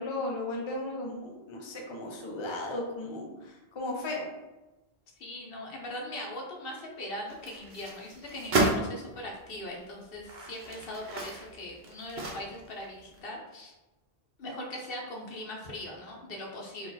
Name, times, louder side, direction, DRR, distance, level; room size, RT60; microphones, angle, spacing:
voice 1, 0.0-4.3, left 2 dB, 30° left, -1 dB, 0.6 m, -35 dB
voice 2, 5.2-13.7 14.4-16.9, left 1 dB, 65° left, -1 dB, 1.0 m, -40 dB
sound 1, 7.3-8.8 9.5-9.6 10.1-12.8 13.1-13.2, right 2 dB, 75° right, 1.0 m, -32 dB
3.9 x 2.6 x 4.0 m, 1.1 s
omnidirectional pair, 1.0 m